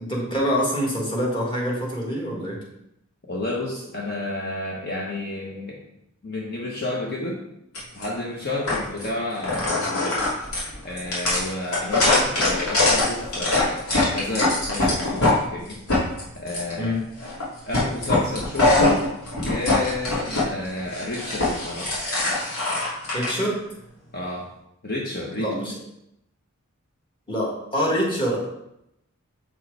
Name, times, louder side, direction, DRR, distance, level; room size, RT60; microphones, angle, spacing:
voice 1, 0.0-2.6 16.8-17.1 23.1-23.6 25.4-25.7 27.3-28.5, equal, 20° left, -3 dB, 1.6 m, -25 dB
voice 2, 3.3-5.8 6.2-7.4 7.9-10.2 10.8-13.8 14.1-15.8 16.3-16.9 17.2-17.3 17.6-19.0 19.4-22.0 24.1-24.5 24.8-25.5, left 2 dB, 45° left, -2 dB, 1.0 m, -31 dB
sound 1, 7.7-8.0 8.7-9.1 9.4-15.4 15.7-16.7 17.2-17.4 17.7-20.4 20.8-23.3, left 2 dB, 80° left, 2.9 m, -22 dB
7.4 x 4.6 x 4.7 m, 0.81 s
head